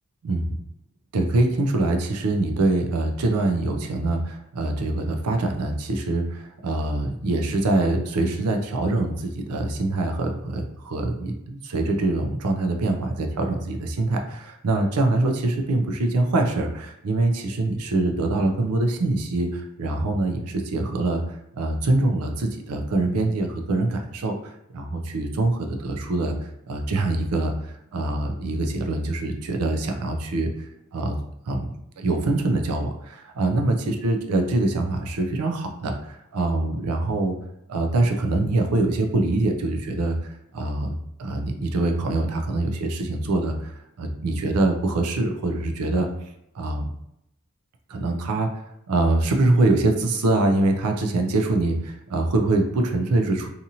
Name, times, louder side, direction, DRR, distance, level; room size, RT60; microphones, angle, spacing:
voice 1, 0.2-0.6 1.1-26.4 26.7-30.7 30.9-31.2 31.5-37.4 37.7-43.7 44.0-46.1 46.5-46.9 47.9-48.6 48.9-53.5, right 2 dB, 85° right, 4 dB, 0.5 m, -24 dB
2.8 x 2.5 x 2.7 m, 0.80 s
head